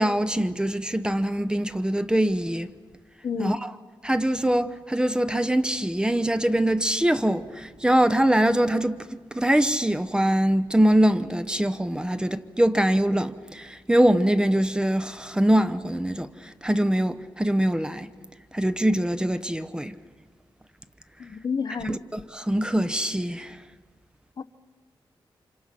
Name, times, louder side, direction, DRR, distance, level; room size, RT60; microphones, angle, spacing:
voice 1, 0.0-2.7 3.4-3.7 4.0-18.1 18.5-19.9 21.8-23.6, right 1 dB, 10° right, 0.8 m, -23 dB
voice 2, 3.2-3.6 21.2-22.0 24.4-24.5, left 5 dB, 50° left, 0.7 m, -29 dB
29.0 x 26.0 x 5.8 m
wide cardioid pair, 100°, 9 cm